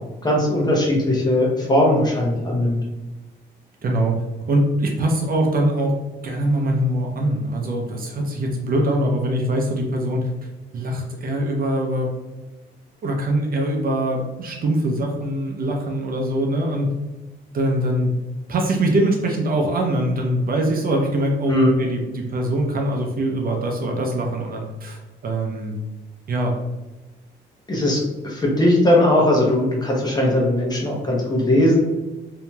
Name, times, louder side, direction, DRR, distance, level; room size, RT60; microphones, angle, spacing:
voice 1, 0.2-2.8 21.4-21.7 27.7-31.8, left 1 dB, 20° left, -3 dB, 0.9 m, -19 dB
voice 2, 3.8-4.2 4.5-5.9 6.2-10.2 10.7-12.1 13.0-16.9 17.5-18.1 18.5-21.5 21.8-25.8 26.3-26.5, right 1 dB, 45° right, 1 dB, 0.6 m, -22 dB
2.8 x 2.7 x 2.3 m, 1.1 s
cardioid pair, 90°, 20 cm